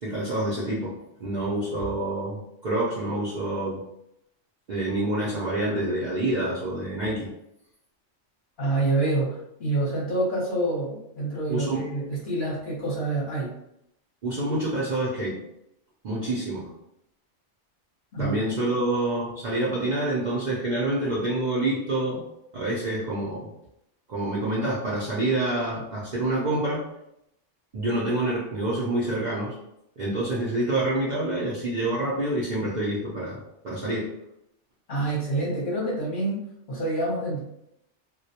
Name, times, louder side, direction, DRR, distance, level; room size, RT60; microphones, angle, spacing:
voice 1, 0.0-3.8 4.7-7.3 11.5-11.8 14.2-15.4 16.0-16.7 18.2-22.3 22.5-23.5 24.1-26.9 27.7-29.6 30.0-34.1, right 1 dB, 55° right, -7 dB, 0.5 m, -27 dB
voice 2, 8.6-13.5 18.1-18.4 34.9-36.4 36.7-37.4, right 2 dB, 50° left, -5 dB, 0.8 m, -27 dB
2.2 x 2.1 x 2.7 m, 0.81 s
omnidirectional pair, 1.2 m